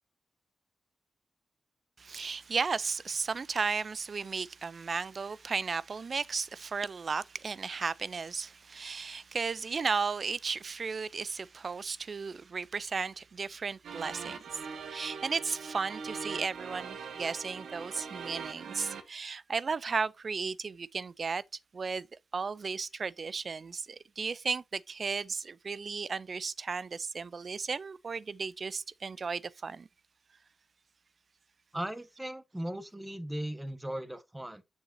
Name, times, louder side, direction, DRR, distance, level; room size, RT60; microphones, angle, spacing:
voice 1, 2.0-14.6 14.9-21.4 21.7-22.1 22.3-29.9, right 5 dB, 55° right, 0.4 m, -34 dB
sound 1, 13.8-19.0, right 5 dB, 80° right, 0.9 m, -42 dB
voice 2, 31.7-34.6, right 1 dB, 15° right, 1.3 m, -38 dB
6.9 x 6.4 x 2.7 m
supercardioid pair, 40°, 0 cm